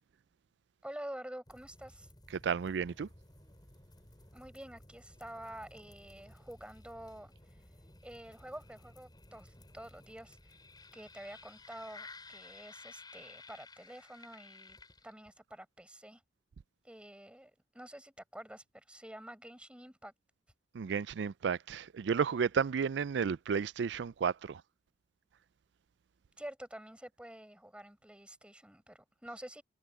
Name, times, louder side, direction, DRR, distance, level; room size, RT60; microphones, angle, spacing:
voice 1, 0.8-2.1 4.3-7.3 8.0-10.4 10.9-16.2 16.8-20.1 26.4-29.6, right 1 dB, 5° right, 5.2 m, -48 dB
sound 1, 1.5-15.4, left 3 dB, 25° left, 5.5 m, -56 dB
voice 2, 2.3-3.1 20.7-24.6, right 6 dB, 75° right, 0.4 m, -32 dB
head